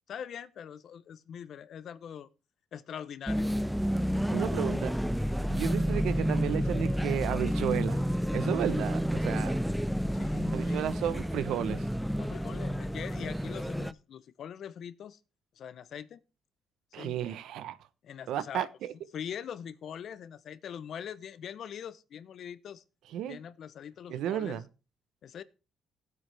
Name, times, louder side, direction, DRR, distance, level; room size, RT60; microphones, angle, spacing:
voice 1, 0.1-2.3 2.7-3.7 10.1-11.0 12.2-15.2 15.6-16.2 16.9-17.1 18.0-18.7 19.1-22.8 23.3-24.6 25.2-25.4, left 8 dB, 65° left, 0.8 m, -42 dB
sound 1, 3.3-13.9, equal, ahead, 0.5 m, -30 dB
voice 2, 4.3-4.9 5.5-8.0 8.3-9.6 10.5-11.9 16.9-17.8 18.3-18.9 23.1-23.4 24.1-24.7, right 11 dB, 85° right, 0.9 m, -33 dB
16.5 x 8.0 x 3.4 m
cardioid pair, 90°, 0 cm